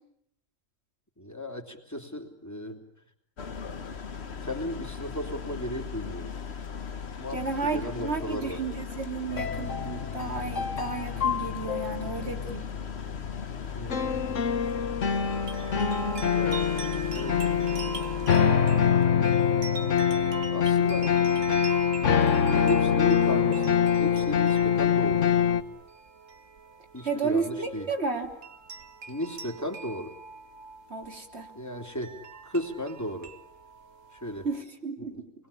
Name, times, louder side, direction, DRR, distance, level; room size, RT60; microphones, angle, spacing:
voice 1, 1.2-2.8 4.4-6.3 7.2-8.6 13.7-14.4 16.3-17.6 20.5-21.1 22.4-25.3 26.9-27.9 29.1-30.1 31.5-32.1 32.4-33.3 34.1-34.5 35.0-35.2, left 1 dB, 15° left, 4 dB, 3.3 m, -35 dB
sound 1, 3.4-18.4, left 6 dB, 55° left, 1.6 m, -38 dB
voice 2, 7.3-12.7 27.0-28.3 30.9-31.5 34.4-35.3, right 4 dB, 55° right, 4 dB, 3.6 m, -32 dB
sound 2, 9.3-25.6, left 7 dB, 70° left, 1.7 m, -25 dB
sound 3, 15.3-34.6, right 4 dB, 75° right, 2.3 m, -42 dB
29.0 x 22.0 x 8.6 m, 0.71 s
omnidirectional pair, 1.3 m